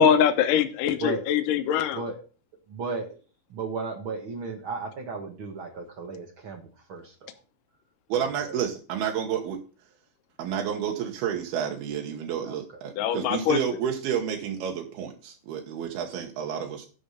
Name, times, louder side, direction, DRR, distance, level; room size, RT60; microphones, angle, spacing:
voice 1, 0.0-2.0 13.0-13.6, left 8 dB, 70° left, 2.3 m, -22 dB
voice 2, 2.7-3.2 3.5-7.3 8.4-8.5 12.4-12.6, right 4 dB, 60° right, 1.3 m, -34 dB
voice 3, 8.1-9.6 10.4-16.9, right 8 dB, 85° right, 3.1 m, -30 dB
11.5 x 5.1 x 5.6 m
omnidirectional pair, 4.3 m